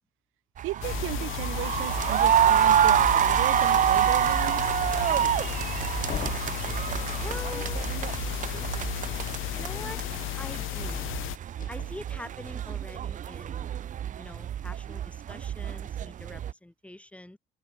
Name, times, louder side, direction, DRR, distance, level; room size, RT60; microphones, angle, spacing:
sound 1, 0.6-16.5, right 10 dB, 40° right, 0.5 m, -27 dB
voice 1, 0.6-4.7, right 18 dB, 80° right, 1.0 m, -36 dB
sound 2, 0.8-11.4, left 17 dB, 80° left, 3.7 m, -34 dB
sound 3, 6.0-7.6 11.5-12.5, left 7 dB, 40° left, 4.8 m, -41 dB
voice 2, 7.2-7.9 9.5-10.0 10.4-11.1 11.7-13.8 14.2-17.4, left 1 dB, 5° left, 4.2 m, -44 dB
cardioid pair, 120°, 20 cm